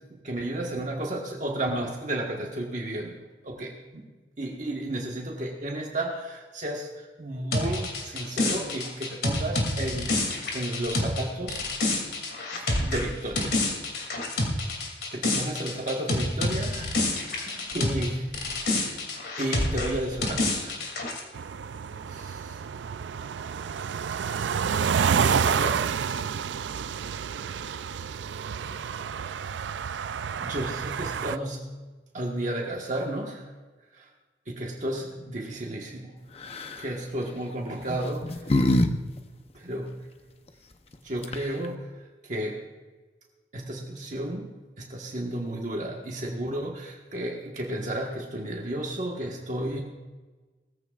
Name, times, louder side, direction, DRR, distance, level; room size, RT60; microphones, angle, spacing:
voice 1, 0.1-3.1 3.4-4.1 4.4-11.7 12.5-13.5 15.1-16.9 17.2-18.3 18.6-19.0 19.4-20.8 22.1-22.6 25.0-25.8 28.4-28.7 30.4-31.7 32.1-33.5 33.9-34.1 34.5-36.1 36.8-38.6 39.5-40.0 41.0-41.9 42.2-42.6 43.5-49.8, right 1 dB, 45° right, -1 dB, 1.4 m, -33 dB
sound 1, 7.5-18.1 18.3-21.2, left 2 dB, 60° left, 2.8 m, -28 dB
sound 2, 21.3-31.4, right 7 dB, 80° right, 0.4 m, -29 dB
sound 3, 36.4-36.8 37.8-38.9 39.2-39.3 40.9-41.0 41.2-41.7, left 1 dB, 35° left, 0.7 m, -24 dB
19.5 x 15.0 x 2.5 m, 1.3 s
head